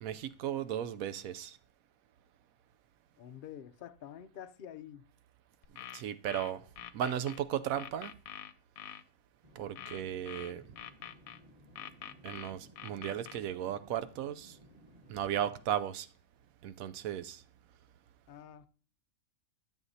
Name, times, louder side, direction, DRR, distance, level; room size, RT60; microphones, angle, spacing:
voice 1, 0.0-1.6 5.9-6.7 6.9-8.1 9.6-10.6 12.2-14.6 15.1-16.1 16.6-17.4, right 10 dB, 80° right, 1.0 m, -35 dB
voice 2, 3.2-5.1 18.3-18.7, left 10 dB, 65° left, 0.5 m, -48 dB
sound 1, 5.6-7.4 7.8-9.0 9.8-11.4 11.8-13.4, left 10 dB, 90° left, 1.0 m, -45 dB
sound 2, 9.4-15.7, right 1 dB, 25° right, 1.6 m, -59 dB
12.5 x 7.3 x 2.7 m
omnidirectional pair, 1.5 m